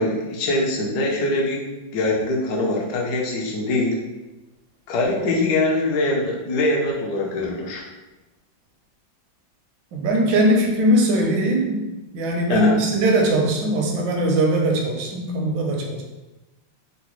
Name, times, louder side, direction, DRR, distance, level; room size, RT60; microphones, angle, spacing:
voice 1, 0.0-1.6 1.9-4.0 4.9-7.8 12.5-12.8, left 2 dB, 70° left, -2 dB, 1.1 m, -23 dB
voice 2, 9.9-11.9 12.1-16.0, right 1 dB, 75° right, 1 dB, 1.2 m, -20 dB
3.8 x 2.0 x 2.9 m, 1.1 s
omnidirectional pair, 2.1 m